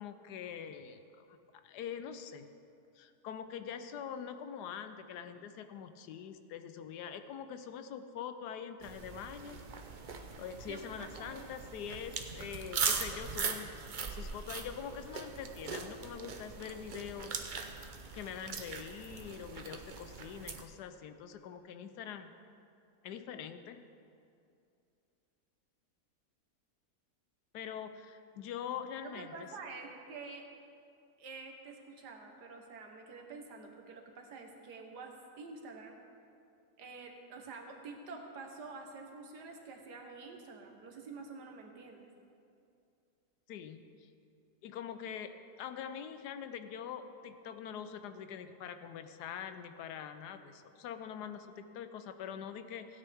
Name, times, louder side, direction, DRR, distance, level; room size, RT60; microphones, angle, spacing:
voice 1, 0.0-1.4 1.6-2.5 2.9-9.6 10.2-13.7 14.1-17.7 18.1-22.3 23.0-23.8 27.5-29.5 43.5-44.1 44.6-53.0, left 8 dB, 85° left, 10 dB, 1.2 m, -44 dB
sound 1, 8.8-20.6, right 5 dB, 55° right, 0.5 m, -40 dB
voice 2, 10.7-11.5 29.0-30.4 31.2-36.0 36.8-42.1, right 4 dB, 90° right, 3 dB, 1.7 m, -48 dB
16.0 x 9.7 x 3.5 m, 2.5 s
omnidirectional pair, 1.7 m